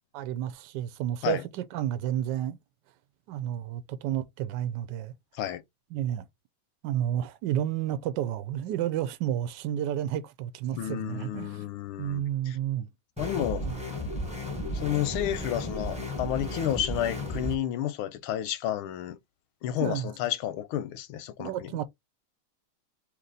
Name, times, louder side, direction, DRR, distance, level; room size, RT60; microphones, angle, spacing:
voice 1, 0.1-2.6 3.3-5.1 5.9-6.3 6.8-11.6 12.0-12.9 13.6-13.8 19.8-20.1 21.4-21.8, right 11 dB, 70° right, 1.1 m, -31 dB
voice 2, 10.7-12.6 13.2-13.6 14.7-19.2 19.6-21.7, left 11 dB, 90° left, 1.5 m, -31 dB
sound 1, 13.2-17.6, left 1 dB, 5° right, 0.8 m, -34 dB
3.2 x 2.9 x 3.9 m
omnidirectional pair, 2.3 m